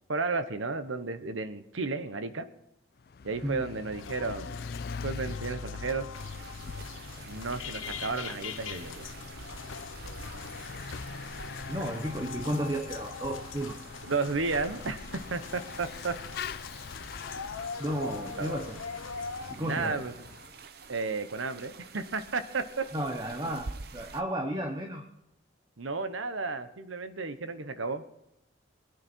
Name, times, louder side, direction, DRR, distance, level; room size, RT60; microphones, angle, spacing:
voice 1, 0.1-2.5 3.2-4.5 5.0-6.1 7.2-9.0 14.1-16.2 18.4-18.6 19.5-20.1 20.9-22.9 25.8-28.0, right 4 dB, 85° right, 11 dB, 1.0 m, -33 dB
Bicycle / Mechanisms, 3.0-20.6, left 5 dB, 50° left, 0.4 m, -44 dB
sound 1, 3.9-19.5, left 5 dB, 85° left, 0.8 m, -42 dB
sound 2, 6.1-24.2, right 4 dB, 50° right, 0.7 m, -48 dB
voice 2, 11.7-13.8 17.8-18.8 19.5-20.0 22.9-25.0, right 1 dB, 20° right, 4 dB, 1.0 m, -33 dB
21.0 x 9.8 x 4.5 m, 0.85 s
head